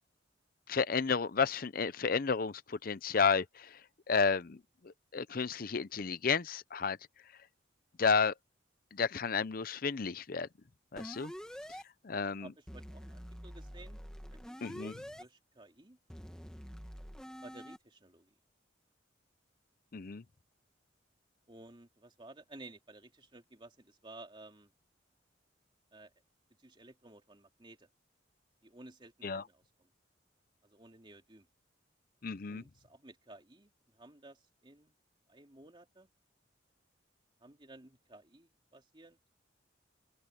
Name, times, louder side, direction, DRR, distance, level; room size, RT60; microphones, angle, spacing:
voice 1, 0.7-3.8 4.1-4.6 5.1-7.0 8.0-8.3 8.9-10.5 10.9-11.3 12.0-12.5 14.6-14.9 19.9-20.2 29.2-29.4 32.2-32.6, left 5 dB, 50° left, 0.6 m, -31 dB
sound 1, 11.0-11.8 12.7-15.2 16.1-17.8, equal, 5° left, 1.7 m, -46 dB
voice 2, 12.4-14.0 14.3-16.0 17.4-18.3 21.5-24.7 25.9-26.1 26.6-27.9 28.6-29.9 30.6-31.5 32.5-34.9 35.3-36.1 37.4-39.4, right 2 dB, 25° right, 2.9 m, -55 dB
open air
head